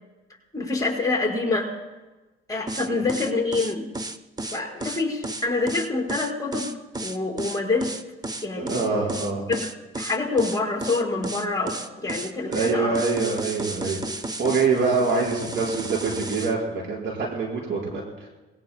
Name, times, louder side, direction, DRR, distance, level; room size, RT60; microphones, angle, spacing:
voice 1, 0.5-1.7 2.5-3.9 4.5-6.7 7.0-7.9 8.4-8.9 9.5-9.7 9.9-13.0, left 3 dB, 15° left, -1 dB, 4.7 m, -26 dB
sound 1, 2.7-16.5, right 2 dB, 20° right, 0.8 m, -33 dB
voice 2, 8.5-9.5 12.5-18.3, right 4 dB, 70° right, -2 dB, 4.8 m, -25 dB
28.0 x 20.5 x 2.2 m, 1.2 s
cardioid pair, 90°, 20 cm